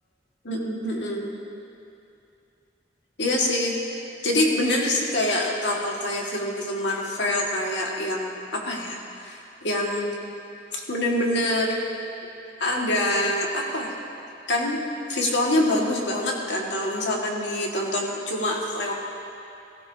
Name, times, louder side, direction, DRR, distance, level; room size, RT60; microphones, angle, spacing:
voice 1, 0.4-1.3 3.2-10.2 10.7-11.8 12.6-13.9 14.5-14.8 15.1-18.9, left 1 dB, 70° left, -2 dB, 1.9 m, -25 dB
17.5 x 15.5 x 2.8 m, 2.7 s
head